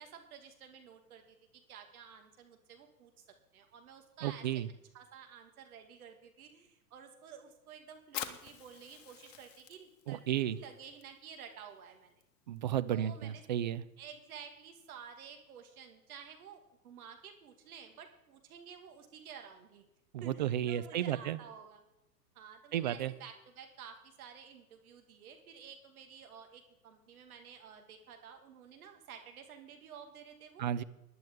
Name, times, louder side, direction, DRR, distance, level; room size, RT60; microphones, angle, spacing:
voice 1, 0.0-1.4 1.7-3.2 3.5-4.4 4.9-10.2 10.5-12.2 12.9-13.4 14.0-19.8 20.2-21.8 22.3-30.7, right 7 dB, 60° right, 5 dB, 2.1 m, -52 dB
voice 2, 4.2-4.7 10.1-10.6 12.5-13.8 20.1-21.4 22.7-23.1 30.6-30.8, right 11 dB, 30° right, 14 dB, 0.4 m, -33 dB
Fire, 8.0-15.2, left 10 dB, 50° left, 1.5 m, -50 dB
18.5 x 11.0 x 3.8 m, 0.92 s
figure-of-eight pair, 110°, 49 cm